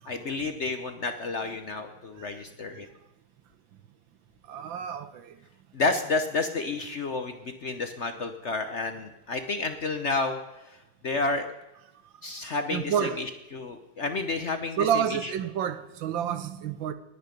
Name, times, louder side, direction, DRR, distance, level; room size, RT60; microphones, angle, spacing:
voice 1, 0.0-2.9 5.7-10.4 10.6-10.8 11.0-11.5 12.2-15.3, left 3 dB, 50° left, 0.9 m, -30 dB
voice 2, 4.5-5.4 12.7-13.2 14.8-16.9, right 9 dB, 85° right, 1.6 m, -29 dB
20.0 x 8.8 x 5.2 m
omnidirectional pair, 2.1 m